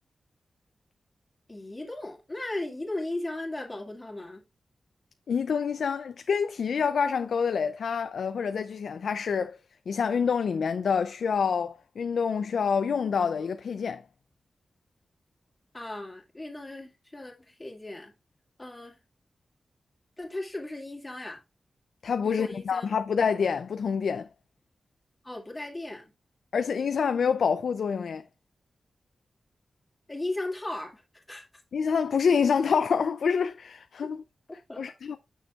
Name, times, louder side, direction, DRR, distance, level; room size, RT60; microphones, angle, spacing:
voice 1, 1.5-4.4 15.7-18.1 18.6-19.0 20.2-21.4 22.2-22.9 25.2-26.1 30.1-31.0 31.3-31.4 34.7-34.8, left 2 dB, 20° left, 2.2 m, -36 dB
voice 2, 5.3-9.6 9.9-14.0 22.0-24.3 26.5-28.2 31.7-34.2 34.8-35.2, left 6 dB, 85° left, 0.4 m, -27 dB
9.0 x 6.4 x 2.4 m
wide cardioid pair, 140°, 0 cm